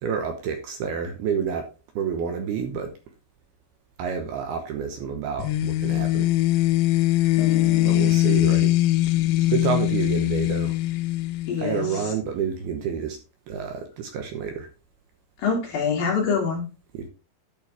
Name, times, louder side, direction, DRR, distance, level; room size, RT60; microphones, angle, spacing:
voice 1, 0.0-2.9 4.0-6.4 7.8-8.8 9.5-10.8 11.6-13.2 13.5-14.7 16.9-17.1, right 7 dB, 70° right, 2.7 m, -29 dB
sound 1, 5.4-12.0, left 16 dB, 90° left, 2.2 m, -22 dB
voice 2, 7.4-8.1 11.5-12.0 15.4-16.6, left 5 dB, 55° left, 3.7 m, -26 dB
10.5 x 6.3 x 3.4 m
omnidirectional pair, 5.2 m